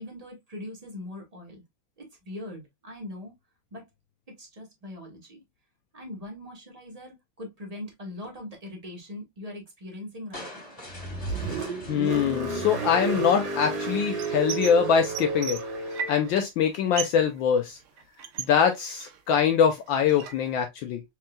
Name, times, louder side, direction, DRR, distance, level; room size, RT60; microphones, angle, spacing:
voice 1, 0.0-1.6 2.0-3.3 3.7-3.8 4.4-5.4 5.9-10.8, left 1 dB, 25° right, 1.0 m, -41 dB
sound 1, 10.3-13.6, left 1 dB, 20° left, 1.4 m, -45 dB
Car, 10.9-16.3, right 4 dB, 65° right, 1.8 m, -31 dB
voice 2, 11.9-15.6 15.8-17.8 18.5-21.0, left 7 dB, 75° left, 1.2 m, -23 dB
sound 2, 14.2-14.8 15.0-16.4 16.7-17.3 17.5-19.3 19.7-20.5, right 8 dB, 80° right, 1.6 m, -36 dB
4.4 x 3.4 x 2.2 m
omnidirectional pair, 2.3 m